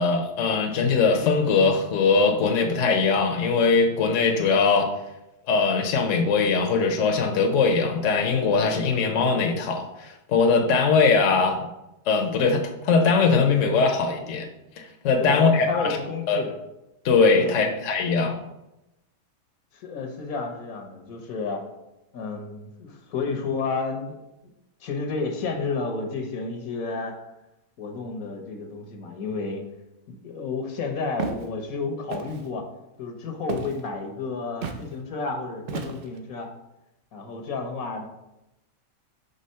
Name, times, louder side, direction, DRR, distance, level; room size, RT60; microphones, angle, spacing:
voice 1, 0.0-4.9 5.5-11.7 12.1-14.5 14.8-16.0 16.3-16.4 17.0-18.3, left 4 dB, 70° left, 4 dB, 1.0 m, -21 dB
voice 2, 15.2-16.5 17.3-17.8 19.7-21.6 22.1-24.2 24.8-27.1 27.8-29.6 30.1-32.7 33.0-36.5 37.1-38.1, left 4 dB, 85° left, 4 dB, 1.4 m, -31 dB
Walk footsteps, 31.2-31.5 32.1-32.5 33.5-33.8 34.6-34.9 35.7-36.2, right 5 dB, 60° right, 0.6 m, -32 dB
5.4 x 3.4 x 5.5 m, 0.90 s
omnidirectional pair, 1.4 m